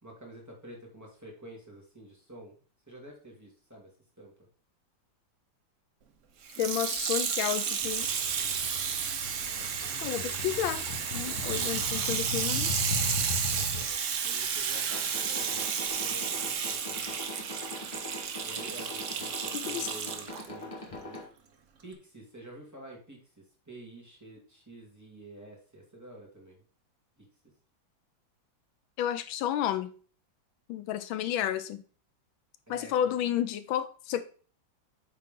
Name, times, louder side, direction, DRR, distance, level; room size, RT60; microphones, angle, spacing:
voice 1, 0.0-2.5 2.9-3.9 4.2-4.3 9.4-10.5 13.5-14.0 14.2-15.7 15.9-17.3 18.4-21.2 21.8-26.6 27.2-27.3 32.7-32.9, right 1 dB, 10° right, -3 dB, 2.0 m, -49 dB
Water tap faucet / Sink (filling or washing), 6.5-20.5 21.1-21.2, right 7 dB, 65° right, 0.8 m, -32 dB
voice 2, 6.6-8.1 10.0-10.8 11.1-12.7 19.5-19.9 29.0-29.9 30.7-31.8 32.7-34.2, left 10 dB, 90° left, 12 dB, 1.5 m, -31 dB
sound 1, 7.8-13.8, left 3 dB, 50° left, 1.7 m, -38 dB
sound 2, 14.7-21.2, left 2 dB, 20° left, 1.2 m, -43 dB
8.6 x 3.8 x 3.7 m, 0.40 s
omnidirectional pair, 2.1 m